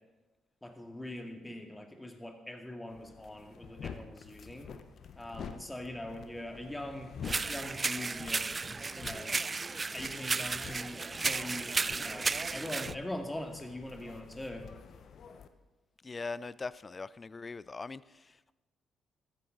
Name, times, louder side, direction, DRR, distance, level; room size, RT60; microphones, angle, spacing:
voice 1, 0.6-4.7 5.1-7.1 7.5-8.4 9.0-9.4 9.9-14.7, left 1 dB, 15° left, 4 dB, 2.3 m, -42 dB
sound 1, 2.9-15.5, left 6 dB, 55° left, 1.0 m, -48 dB
sound 2, 7.2-12.9, right 4 dB, 35° right, 0.3 m, -34 dB
voice 2, 16.0-18.5, left 4 dB, 35° left, 19 dB, 0.5 m, -41 dB
14.5 x 14.0 x 4.0 m, 1.1 s
hypercardioid pair, 50°, 0 cm